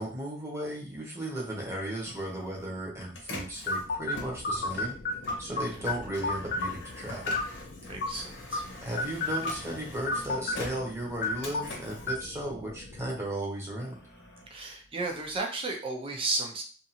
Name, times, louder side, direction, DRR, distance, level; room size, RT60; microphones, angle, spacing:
voice 1, 0.0-5.0 5.4-7.4 8.8-14.0, right 1 dB, 15° right, -4 dB, 0.9 m, -35 dB
Printer, 1.7-13.1 13.5-15.4, left 2 dB, 85° left, 0.8 m, -45 dB
sound 1, 3.7-13.2, left 3 dB, 50° left, 0.4 m, -34 dB
voice 2, 7.9-8.6 14.5-16.6, right 3 dB, 30° right, 1 dB, 0.6 m, -33 dB
2.5 x 2.5 x 2.8 m, 0.37 s
head